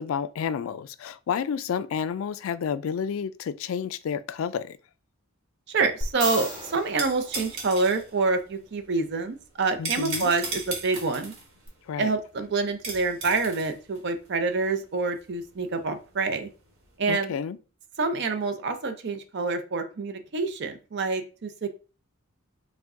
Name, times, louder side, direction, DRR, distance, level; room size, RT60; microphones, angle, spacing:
voice 1, 0.0-4.8 9.8-10.3 11.9-12.1 17.1-17.6, left 7 dB, 70° left, 0.3 m, -30 dB
voice 2, 5.7-11.3 12.0-16.5 17.0-17.3 18.0-21.7, right 3 dB, 50° right, 0.5 m, -27 dB
sound 1, 5.8-16.9, right 3 dB, 85° right, 1.3 m, -38 dB
sound 2, 6.0-8.2 11.7-11.8, right 1 dB, 20° right, 1.1 m, -35 dB
4.7 x 2.2 x 3.6 m
head